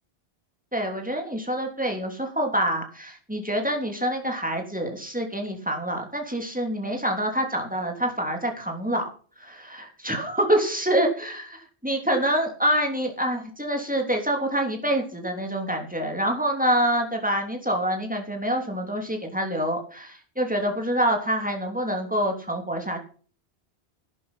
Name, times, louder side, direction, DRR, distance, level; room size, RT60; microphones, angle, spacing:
voice 1, 0.7-9.1 9.4-11.6 11.8-23.0, right 1 dB, 5° right, 2 dB, 3.3 m, -26 dB
12.0 x 11.0 x 5.7 m, 0.42 s
omnidirectional pair, 1.1 m